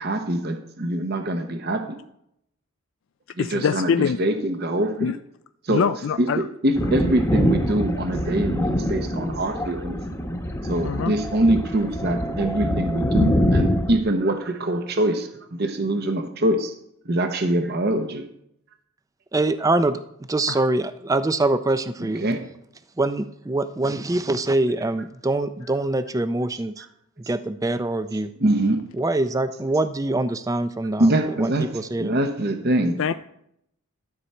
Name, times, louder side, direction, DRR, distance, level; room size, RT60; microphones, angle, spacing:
voice 1, 0.0-2.0 3.4-5.2 5.6-5.8 6.2-10.0 10.6-16.7 17.0-18.3 22.0-22.4 28.4-28.8 31.0-31.7 32.0-33.1, right 1 dB, 45° right, 6 dB, 0.8 m, -24 dB
voice 2, 3.4-4.2 5.0-5.2 5.7-6.4 10.8-11.1 20.5-20.6 33.0-33.1, left 6 dB, 60° left, 11 dB, 0.3 m, -24 dB
Thunder, 6.7-14.0, equal, 10° left, 1.0 m, -24 dB
voice 3, 19.3-20.0 20.3-22.2 23.0-26.9 27.3-28.3 29.0-31.1 31.4-32.1, right 2 dB, 15° right, 11 dB, 0.4 m, -24 dB
13.0 x 7.0 x 4.3 m, 0.75 s
head